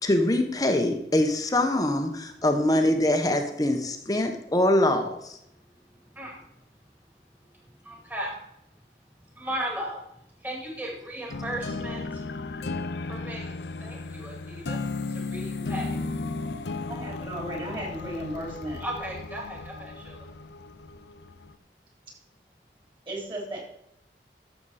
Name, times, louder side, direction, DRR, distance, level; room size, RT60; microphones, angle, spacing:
voice 1, 0.0-5.4, left 1 dB, 20° left, 5 dB, 0.9 m, -24 dB
voice 2, 7.9-8.3 9.4-10.0 10.4-12.0 13.1-13.5 13.8-14.8 15.3-15.9 18.8-19.9, right 1 dB, 10° right, -1 dB, 2.3 m, -35 dB
sound 1, 11.3-21.5, left 3 dB, 80° left, 0.6 m, -35 dB
voice 3, 16.9-18.8 23.1-23.6, right 1 dB, 30° right, -2 dB, 3.6 m, -35 dB
13.5 x 6.9 x 4.2 m, 0.80 s
head